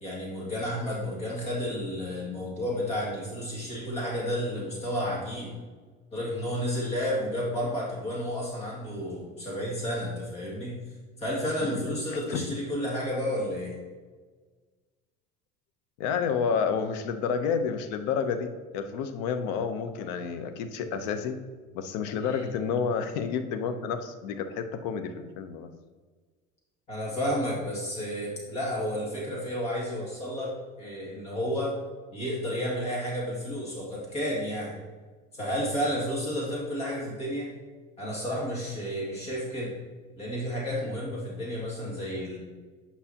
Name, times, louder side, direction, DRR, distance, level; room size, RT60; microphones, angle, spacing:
voice 1, 0.0-5.5 6.1-10.8 11.2-13.7 22.2-22.5 26.9-31.7 32.1-34.7 35.3-37.5 38.0-39.7 40.2-42.4, equal, 30° left, -4 dB, 2.1 m, -31 dB
voice 2, 12.1-12.4 16.0-21.4 21.7-25.7, left 6 dB, 85° left, 9 dB, 0.7 m, -30 dB
9.2 x 5.6 x 2.8 m, 1.4 s
cardioid pair, 155°, 20 cm